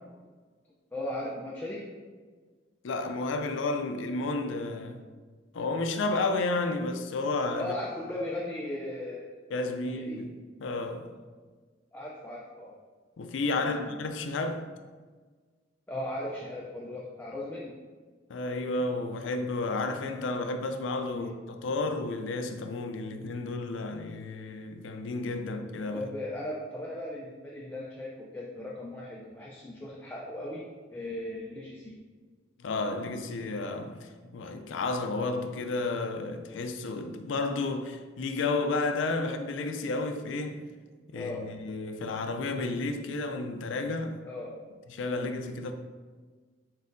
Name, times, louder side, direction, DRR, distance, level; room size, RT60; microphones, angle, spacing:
voice 1, 0.9-1.9 7.6-9.3 9.8-10.2 11.9-12.8 13.7-14.0 15.9-17.8 21.1-21.3 25.9-30.7 30.9-32.0 41.1-41.5 44.2-44.6 45.1-45.3, left 1 dB, 10° left, 0.4 m, -37 dB
voice 2, 2.8-5.0 5.5-7.7 9.5-11.1 13.2-14.7 18.3-26.0 32.6-40.6 41.1-44.2 44.9-45.7, left 3 dB, 85° left, 0.4 m, -32 dB
4.1 x 3.8 x 2.6 m
head